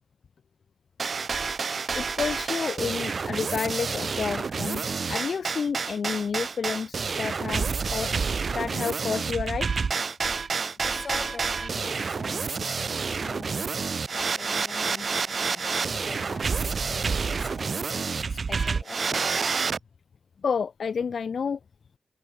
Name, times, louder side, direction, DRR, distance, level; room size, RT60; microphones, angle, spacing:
sound 1, 1.0-19.8, right 5 dB, 55° right, 2.2 m, -29 dB
voice 1, 1.9-8.1 8.5-9.7 20.4-21.6, left 6 dB, 75° left, 0.7 m, -30 dB
voice 2, 10.8-18.0 18.2-19.5, left 4 dB, 50° left, 3.3 m, -44 dB
wide cardioid pair, 150°, 0 cm